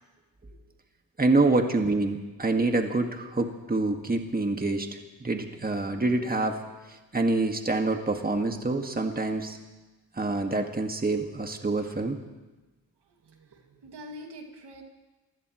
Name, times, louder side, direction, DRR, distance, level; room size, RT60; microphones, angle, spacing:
voice 1, 1.2-6.6 6.9-9.6 10.1-12.2, right 2 dB, 20° right, 4 dB, 1.8 m, -26 dB
voice 2, 13.3-14.8, equal, 80° right, 2 dB, 2.3 m, -45 dB
28.0 x 16.5 x 3.1 m, 1.2 s
cardioid pair, 55°, 40 cm